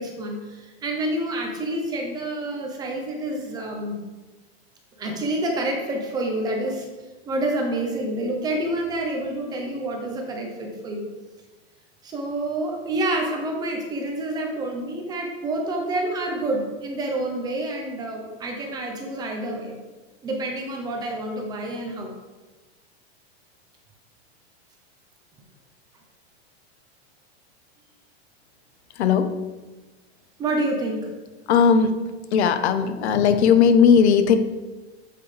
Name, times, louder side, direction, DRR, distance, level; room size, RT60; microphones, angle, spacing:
voice 1, 0.0-4.0 5.0-6.9 7.3-11.0 12.0-19.7 20.2-22.1 30.4-31.1, right 1 dB, 10° right, 2 dB, 0.7 m, -28 dB
voice 2, 29.0-29.3 31.5-31.9 32.3-34.4, left 7 dB, 90° left, 10 dB, 1.0 m, -17 dB
8.5 x 7.7 x 3.3 m, 1.2 s
supercardioid pair, 175°, 32 cm